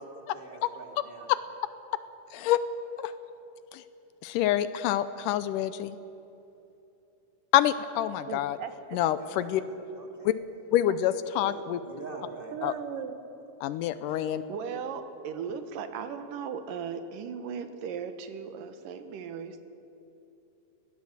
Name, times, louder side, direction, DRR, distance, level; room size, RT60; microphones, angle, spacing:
voice 1, 0.0-1.3 9.2-10.4 11.4-12.6, right 2 dB, 20° right, 1 dB, 1.9 m, -45 dB
voice 2, 2.3-2.6 3.0-3.1 3.7-3.8 4.2-6.0 7.5-8.6 8.9-9.6 10.2-10.3 10.7-11.8 12.6-12.7 13.6-14.4, left 12 dB, 80° left, 13 dB, 2.2 m, -26 dB
voice 3, 8.3-9.0 10.9-11.1 12.5-13.2 14.1-19.6, right 7 dB, 80° right, 9 dB, 2.7 m, -37 dB
21.0 x 17.5 x 7.4 m, 2.9 s
omnidirectional pair, 3.9 m